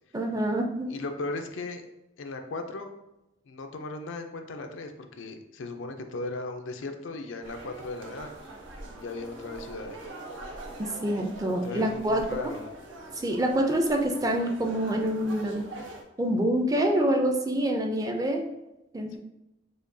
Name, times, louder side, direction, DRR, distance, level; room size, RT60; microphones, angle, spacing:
voice 1, 0.1-0.9 10.8-12.2 13.2-15.7 16.2-18.5 18.9-19.2, right 1 dB, 20° right, 3 dB, 0.4 m, -26 dB
voice 2, 0.9-1.9 2.2-2.9 3.5-8.3 9.0-10.0 11.5-12.7, left 2 dB, 85° left, 5 dB, 0.5 m, -37 dB
sound 1, 7.4-16.0, right 2 dB, 80° right, 0.7 m, -43 dB
4.9 x 2.2 x 2.6 m, 0.93 s
head